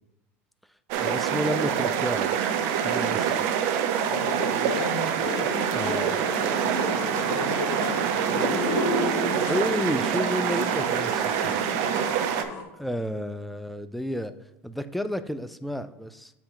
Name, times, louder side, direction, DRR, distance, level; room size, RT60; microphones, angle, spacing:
sound 1, 0.9-12.4, right 8 dB, 65° right, 0.6 m, -26 dB
voice 1, 1.0-2.3 2.8-3.5 5.7-6.2 9.5-11.6 12.8-14.3 14.6-16.3, equal, ahead, 11 dB, 0.3 m, -31 dB
voice 2, 4.0-5.2 7.1-8.5, left 6 dB, 85° left, 8 dB, 0.7 m, -35 dB
sound 2, 5.2-12.6, left 2 dB, 45° left, 1.5 m, -33 dB
7.7 x 2.8 x 5.6 m, 0.86 s
supercardioid pair, 110°, 7 cm